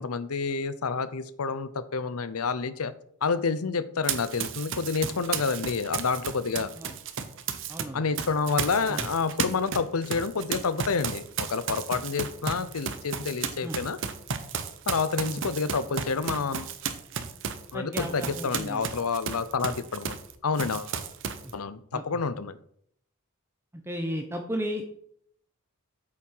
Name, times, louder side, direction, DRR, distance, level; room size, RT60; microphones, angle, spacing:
voice 1, 0.0-2.9 3.2-6.7 7.9-14.0 14.9-16.7 17.7-20.9 21.5-22.6, left 5 dB, 80° left, 14 dB, 0.7 m, -29 dB
Run, 4.0-7.8 8.2-20.3 20.6-21.5, right 6 dB, 60° right, 0.9 m, -33 dB
voice 2, 7.7-8.0 8.9-9.0 13.6-13.8 15.2-15.5 17.7-18.8 21.4-21.5 21.9-22.0 23.9-24.8, equal, 10° right, 4 dB, 0.8 m, -34 dB
8.6 x 7.4 x 4.7 m, 0.67 s
head